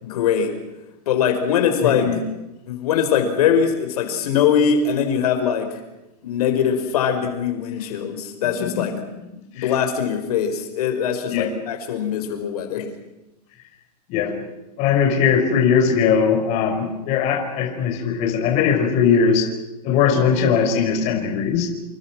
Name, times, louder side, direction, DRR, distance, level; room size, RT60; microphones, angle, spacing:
voice 1, 0.0-0.5 1.0-2.1 2.7-5.8 6.2-8.9 9.5-12.9, left 7 dB, 70° left, 6 dB, 5.1 m, -21 dB
voice 2, 1.7-2.2 8.6-8.9 9.6-9.7 11.3-11.5 14.1-14.4 14.8-19.5 19.8-21.7, left 6 dB, 35° left, 3 dB, 5.5 m, -20 dB
29.0 x 27.0 x 6.2 m, 0.97 s
supercardioid pair, 165°, 20 cm